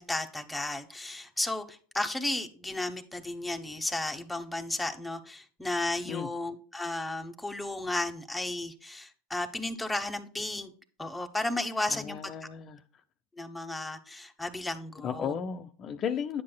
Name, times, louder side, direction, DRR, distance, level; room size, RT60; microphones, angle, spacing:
voice 1, 0.0-10.7 11.0-12.2 13.4-15.3, left 2 dB, 5° left, 1.0 m, -34 dB
voice 2, 11.9-12.8 15.0-16.4, left 7 dB, 35° left, 0.7 m, -34 dB
10.0 x 7.4 x 2.2 m
hypercardioid pair, 110°, 0 cm